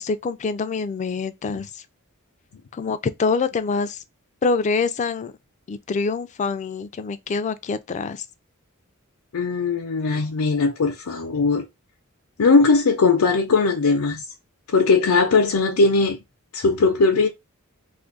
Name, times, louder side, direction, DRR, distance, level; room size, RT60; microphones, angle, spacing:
voice 1, 0.0-1.8 2.7-4.0 4.4-5.3 5.7-8.3, left 4 dB, 35° left, 0.3 m, -25 dB
voice 2, 9.3-11.6 12.4-14.2 14.7-16.2 16.5-17.3, left 4 dB, 85° left, 0.6 m, -19 dB
2.6 x 2.5 x 3.7 m
head